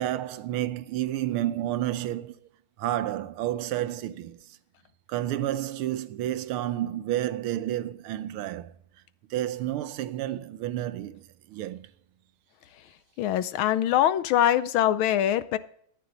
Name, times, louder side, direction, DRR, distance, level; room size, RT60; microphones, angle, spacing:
voice 1, 0.0-2.3 2.8-4.6 5.1-8.7 9.3-11.9, right 13 dB, 80° right, 1.5 m, -30 dB
voice 2, 13.2-15.6, left 11 dB, 75° left, 1.4 m, -23 dB
13.5 x 10.0 x 3.9 m
omnidirectional pair, 2.4 m